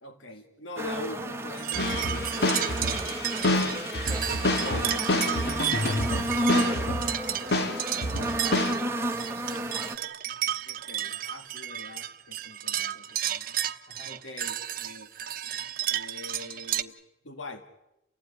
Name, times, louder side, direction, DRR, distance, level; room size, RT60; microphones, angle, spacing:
voice 1, 0.0-2.5 2.8-3.2 3.7-3.9 4.4-5.1 10.7-13.5 14.0-15.1 15.9-17.0 17.2-17.6, left 2 dB, 85° left, 7 dB, 1.9 m, -42 dB
sound 1, 0.8-10.0, right 1 dB, 15° right, 1.2 m, -31 dB
sound 2, 1.6-16.8, right 11 dB, 45° right, 0.9 m, -33 dB
sound 3, 1.7-7.2 7.5-8.7, left 1 dB, 55° left, 2.0 m, -28 dB
voice 2, 3.5-4.4 5.8-7.7 8.1-10.1 13.9-14.2, left 1 dB, 30° left, 3 dB, 4.0 m, -46 dB
30.0 x 15.5 x 9.7 m, 0.94 s
head